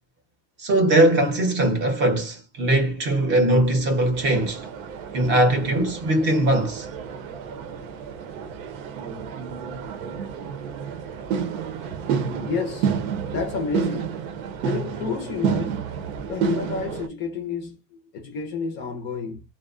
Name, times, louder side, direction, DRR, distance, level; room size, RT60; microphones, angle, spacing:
voice 1, 0.6-4.7 5.1-6.9, right 1 dB, 30° right, 0.6 m, -20 dB
sound 1, 4.1-17.1, right 7 dB, 85° right, 0.8 m, -30 dB
voice 2, 12.4-12.9 13.3-14.2 14.6-15.8 16.3-17.8 18.1-19.4, left 5 dB, 30° left, 0.4 m, -30 dB
2.5 x 2.1 x 2.4 m
supercardioid pair, 165°, 40 cm